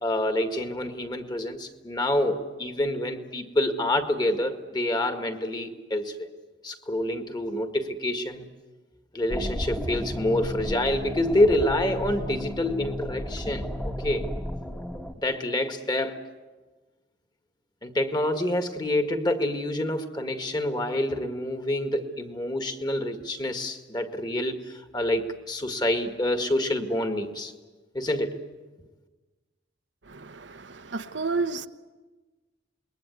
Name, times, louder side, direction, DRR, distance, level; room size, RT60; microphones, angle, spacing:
voice 1, 0.0-6.3 6.6-8.5 9.1-14.3 15.2-16.3 17.8-27.5 27.9-28.4, left 1 dB, 25° left, 1.9 m, -27 dB
sound 1, 9.3-15.1, left 1 dB, 10° left, 1.4 m, -33 dB
voice 2, 30.1-31.7, right 4 dB, 80° right, 1.1 m, -31 dB
28.0 x 21.0 x 9.4 m
head